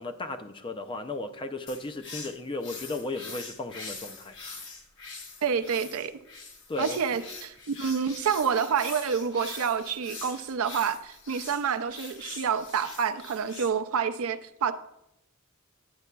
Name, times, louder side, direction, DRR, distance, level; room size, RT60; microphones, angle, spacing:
voice 1, 0.0-4.4 6.7-7.0, left 2 dB, 25° left, 0.4 m, -35 dB
sound 1, 1.7-13.7, left 4 dB, 60° left, 1.1 m, -43 dB
voice 2, 5.4-6.1 6.8-14.7, right 7 dB, 70° right, 0.4 m, -28 dB
9.5 x 8.2 x 2.2 m
head